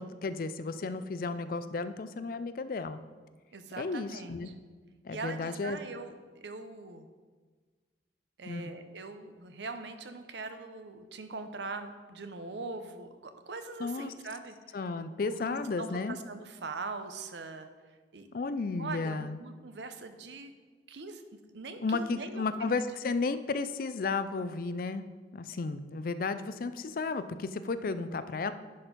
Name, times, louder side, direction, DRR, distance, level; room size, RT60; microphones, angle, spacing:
voice 1, 0.0-3.0 3.8-4.5 5.0-5.8 8.5-8.7 13.8-14.1 14.7-16.2 18.3-19.4 21.8-25.0 25.3-28.5, left 4 dB, 50° left, 12 dB, 0.4 m, -33 dB
voice 2, 3.5-4.5 5.1-7.1 8.4-14.8 15.3-15.4 15.8-17.7 18.1-18.3 18.8-20.5 20.9-22.7, right 3 dB, 75° right, 9 dB, 0.7 m, -42 dB
10.5 x 4.3 x 5.2 m, 1.4 s
head